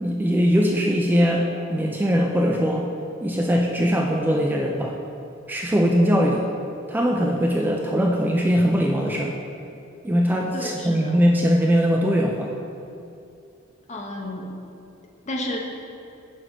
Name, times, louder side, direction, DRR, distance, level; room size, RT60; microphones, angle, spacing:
voice 1, 0.0-2.9 3.2-4.9 5.5-6.5 6.9-9.3 10.0-12.5, equal, 10° right, 0 dB, 0.3 m, -21 dB
voice 2, 10.5-11.2 13.9-14.5 15.3-15.6, left 1 dB, 35° left, 1 dB, 0.8 m, -32 dB
5.8 x 5.2 x 4.6 m, 2.7 s
head